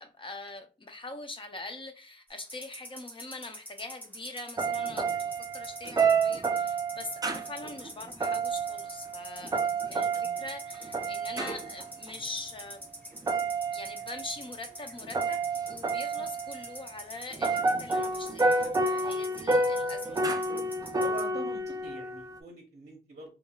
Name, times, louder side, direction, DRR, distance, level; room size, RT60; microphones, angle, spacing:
voice 1, 0.0-12.8 13.7-15.4 15.7-20.4, left 2 dB, 30° left, 0.5 m, -43 dB
sound 1, 2.3-21.3, equal, 10° left, 1.0 m, -44 dB
sound 2, 4.6-11.9 13.2-14.4 15.0-16.8 17.3-22.4, right 3 dB, 20° right, 0.3 m, -30 dB
voice 2, 21.0-23.3, right 3 dB, 40° right, 0.7 m, -43 dB
3.4 x 2.3 x 2.2 m
wide cardioid pair, 140°, 18 cm